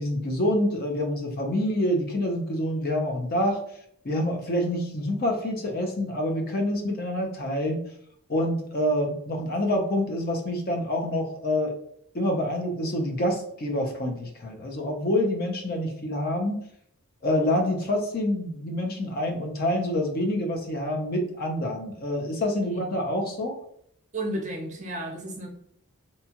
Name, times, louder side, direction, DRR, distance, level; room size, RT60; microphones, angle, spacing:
voice 1, 0.0-3.6 4.0-7.8 8.3-11.7 12.1-16.6 17.2-23.6, left 1 dB, 45° left, 2 dB, 0.5 m, -27 dB
voice 2, 24.1-25.5, right 1 dB, 35° right, 1 dB, 0.6 m, -33 dB
2.7 x 2.3 x 2.8 m, 0.67 s
head